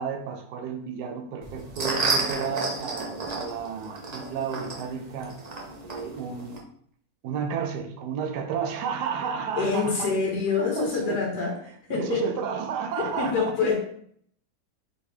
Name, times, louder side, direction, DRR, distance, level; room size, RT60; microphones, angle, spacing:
voice 1, 0.0-5.4 5.8-6.6 7.2-10.1 10.6-11.2 11.9-13.8, right 6 dB, 85° right, 5 dB, 1.2 m, -32 dB
sound 1, 1.4-6.6, right 3 dB, 60° right, 0.4 m, -31 dB
voice 2, 9.6-11.5 11.9-12.2 13.0-13.8, left 5 dB, 85° left, -2 dB, 1.4 m, -26 dB
4.1 x 3.4 x 3.2 m, 0.64 s
omnidirectional pair, 1.7 m